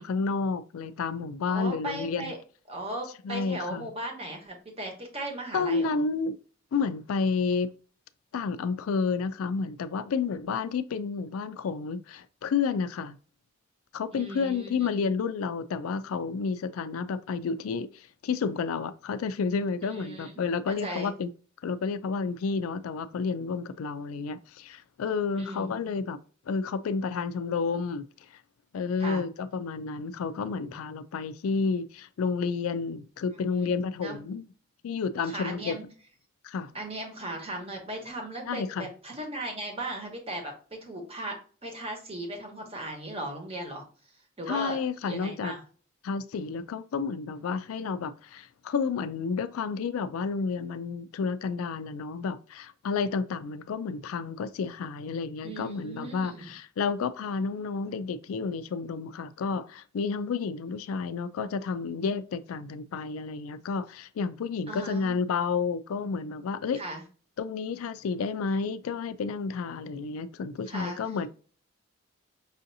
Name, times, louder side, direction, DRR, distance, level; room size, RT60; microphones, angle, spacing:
voice 1, 0.0-2.3 3.2-3.9 5.5-6.4 6.7-7.7 8.3-13.2 13.9-21.3 21.6-26.2 26.5-28.0 28.7-34.4 34.8-35.8 36.4-36.7 38.5-38.9 44.5-45.5 46.0-66.8 67.4-71.3, left 5 dB, 85° left, 0.4 m, -30 dB
voice 2, 1.4-2.4 2.7-5.9 14.1-15.1 19.9-20.3 20.7-21.1 25.3-25.7 29.0-29.2 33.5-33.7 34.0-34.2 35.2-35.9 36.7-43.8 44.4-45.6 55.4-56.5 64.7-65.2 66.7-67.0 70.7-71.0, right 1 dB, 30° right, 1.0 m, -37 dB
5.5 x 2.6 x 2.6 m
head